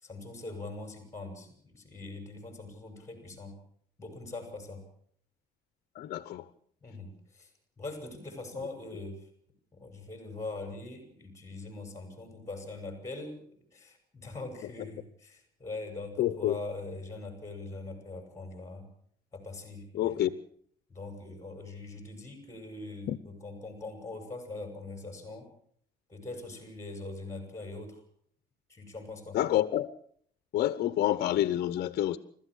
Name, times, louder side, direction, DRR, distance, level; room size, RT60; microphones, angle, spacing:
voice 1, 0.0-3.6 4.0-4.8 6.8-9.3 9.7-13.4 13.7-18.9 19.3-20.2 20.9-25.5 26.1-28.0 28.7-29.4, left 2 dB, 15° left, 5 dB, 6.6 m, -42 dB
voice 2, 5.9-6.4 16.2-16.6 19.9-20.3 23.1-23.2 29.3-29.9 30.5-32.2, left 13 dB, 65° left, 12 dB, 1.0 m, -28 dB
29.5 x 14.0 x 6.4 m, 0.62 s
cardioid pair, 110°, 17 cm